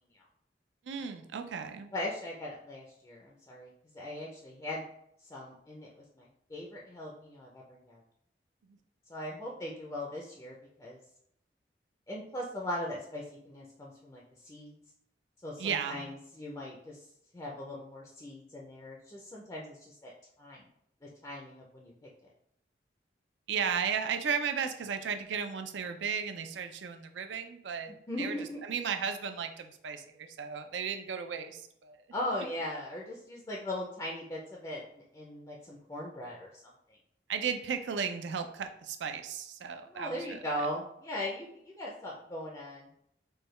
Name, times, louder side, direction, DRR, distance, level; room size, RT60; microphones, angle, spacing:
voice 1, 0.9-1.9 15.6-16.1 23.5-27.9 28.2-32.0 37.3-40.4, right 6 dB, 85° right, 7 dB, 0.4 m, -35 dB
voice 2, 1.9-4.8 5.3-5.9 6.2-8.0 9.1-11.0 12.1-14.8 15.4-17.0 17.3-20.1 20.4-20.6 21.0-21.9 27.9-28.6 32.1-36.5 36.9-37.0 39.9-42.9, left 1 dB, 20° left, -2 dB, 0.4 m, -39 dB
4.6 x 2.2 x 3.1 m, 0.72 s
head